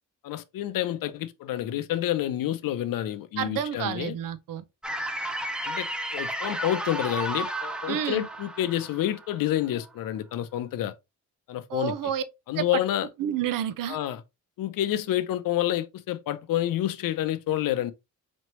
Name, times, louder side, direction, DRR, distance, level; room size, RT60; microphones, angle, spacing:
voice 1, 0.2-4.1 5.6-5.9 6.1-10.9 11.5-12.0 12.5-13.1 13.9-14.2 14.6-17.9, left 12 dB, 85° left, 0.6 m, -28 dB
voice 2, 3.4-4.6 7.9-8.3 11.7-12.2 12.6-12.7 13.2-14.0, right 9 dB, 80° right, 0.6 m, -29 dB
sound 1, 4.8-9.9, right 1 dB, 5° right, 0.4 m, -33 dB
4.3 x 3.1 x 3.0 m
cardioid pair, 125°, 33 cm